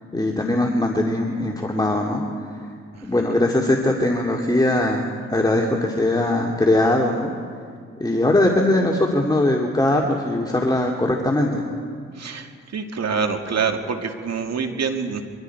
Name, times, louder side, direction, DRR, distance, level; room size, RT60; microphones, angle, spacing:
voice 1, 0.1-2.2 3.0-7.3 8.0-11.6, left 1 dB, 15° left, 0 dB, 2.5 m, -20 dB
voice 2, 2.9-3.3 12.1-15.2, right 5 dB, 65° right, 5 dB, 2.2 m, -26 dB
25.0 x 24.0 x 4.7 m, 2.1 s
supercardioid pair, 50°, 29 cm